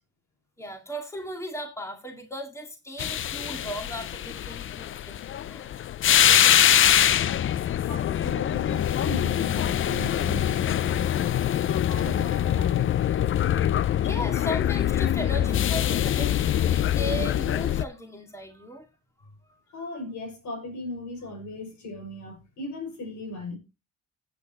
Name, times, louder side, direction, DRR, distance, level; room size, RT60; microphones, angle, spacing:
voice 1, 0.6-5.2 5.4-5.7 6.0-6.6 14.0-18.9 19.2-19.3, equal, 10° left, 2.2 m, -36 dB
sound 1, 3.0-17.8, left 10 dB, 45° left, 0.5 m, -24 dB
voice 2, 7.8-11.5 11.8-12.9 19.7-23.6, left 2 dB, 70° left, 6.3 m, -37 dB
16.0 x 8.6 x 3.0 m
cardioid pair, 90°, 30 cm